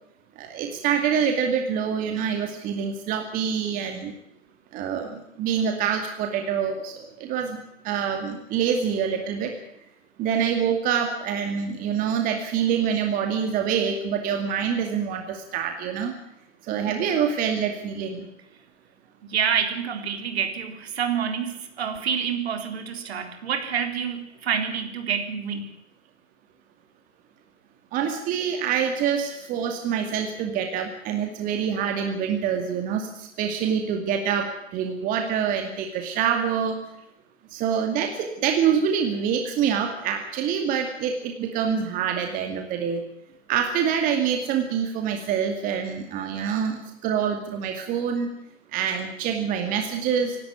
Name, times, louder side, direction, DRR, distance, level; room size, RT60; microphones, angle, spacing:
voice 1, 0.4-4.1 4.7-7.6 7.8-9.5 10.2-16.1 16.7-18.3 19.9-20.0 22.6-22.7 27.9-36.8 37.5-43.0 43.5-48.3 48.7-50.4, right 7 dB, 20° right, 4 dB, 2.2 m, -26 dB
voice 2, 19.3-25.7, right 7 dB, 50° right, 6 dB, 3.9 m, -27 dB
26.0 x 12.0 x 9.3 m, 0.81 s
figure-of-eight pair, 130°, 40 cm